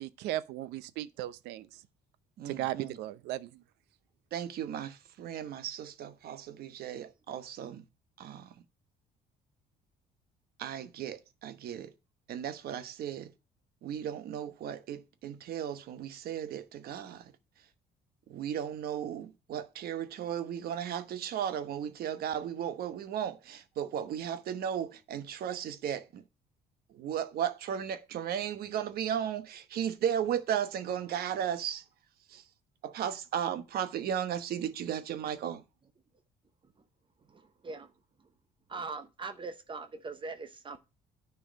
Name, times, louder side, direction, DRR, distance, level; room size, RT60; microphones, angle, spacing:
voice 1, 0.0-1.7 2.4-3.6, right 14 dB, 90° right, 0.6 m, -36 dB
voice 2, 2.4-3.0 4.3-7.8 8.2-8.5 10.6-11.9 12.3-13.3 13.8-17.3 18.3-26.2 26.9-31.8 32.3-32.4 32.8-35.6, right 9 dB, 65° right, 1.1 m, -35 dB
voice 3, 37.3-37.9 38.7-40.8, right 3 dB, 30° right, 0.8 m, -41 dB
10.0 x 4.7 x 5.1 m
cardioid pair, 110°, 17 cm